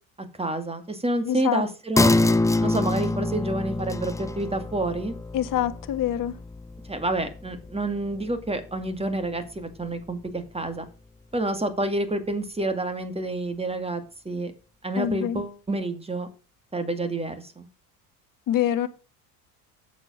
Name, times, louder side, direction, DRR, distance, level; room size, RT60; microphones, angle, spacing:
voice 1, 0.4-2.1 2.6-5.2 6.9-10.8 11.3-14.5 14.8-16.3 16.7-17.7, right 2 dB, 15° right, 2.3 m, -28 dB
voice 2, 1.2-1.6 5.3-6.4 15.0-15.4 18.5-18.9, left 11 dB, 45° left, 1.5 m, -25 dB
sound 1, 2.0-9.0 9.3-9.4, left 2 dB, 5° left, 0.5 m, -26 dB
7.6 x 7.5 x 6.3 m
hypercardioid pair, 75°, 45 cm